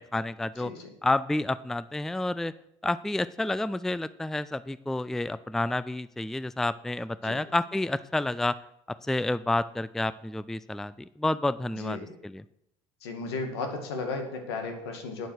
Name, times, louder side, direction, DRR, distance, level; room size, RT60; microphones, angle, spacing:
voice 1, 0.0-0.7 1.0-2.5 2.8-8.6 9.0-12.4, left 2 dB, 5° left, 16 dB, 0.4 m, -29 dB
voice 2, 0.6-0.9 7.2-7.4 11.8-12.1 13.0-15.3, left 3 dB, 85° left, 5 dB, 2.1 m, -35 dB
9.3 x 7.8 x 6.4 m, 0.80 s
hypercardioid pair, 75°, 13 cm